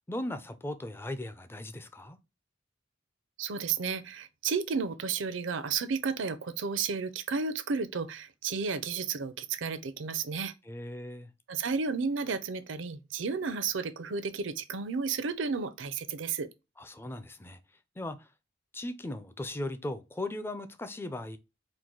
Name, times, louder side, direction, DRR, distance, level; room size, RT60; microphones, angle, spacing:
voice 1, 0.1-2.2 10.7-11.3 16.8-17.6 18.0-18.3 18.7-21.4, left 1 dB, 10° left, 0.4 m, -38 dB
voice 2, 3.4-10.5 11.5-16.5, right 5 dB, 85° right, 0.5 m, -32 dB
4.7 x 2.1 x 3.7 m
head